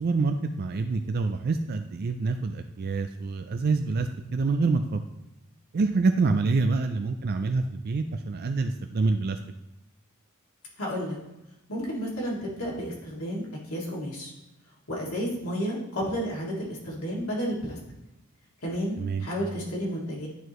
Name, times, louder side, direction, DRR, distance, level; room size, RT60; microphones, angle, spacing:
voice 1, 0.0-5.0 5.7-9.4 19.0-19.3, right 3 dB, 45° right, 7 dB, 0.4 m, -26 dB
voice 2, 10.8-11.2 11.7-14.3 14.9-17.8 18.6-20.3, equal, 75° left, -4 dB, 2.3 m, -32 dB
9.8 x 4.7 x 3.1 m, 0.94 s
head